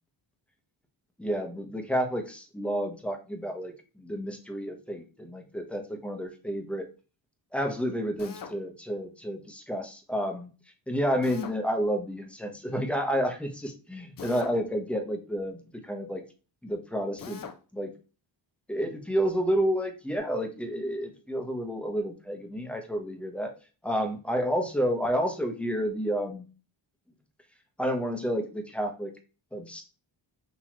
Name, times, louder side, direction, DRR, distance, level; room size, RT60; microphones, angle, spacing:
voice 1, 1.2-6.9 7.5-10.5 10.9-16.2 16.6-17.4 17.7-17.9 18.7-23.5 23.8-26.4 27.8-29.1 29.5-29.8, equal, ahead, 4 dB, 1.0 m, -30 dB
Drill, 8.2-8.6 11.2-11.6 14.2-14.6 17.2-17.6, left 6 dB, 45° left, 0.7 m, -41 dB
5.9 x 2.9 x 3.0 m, 0.34 s
cardioid pair, 95°, 49 cm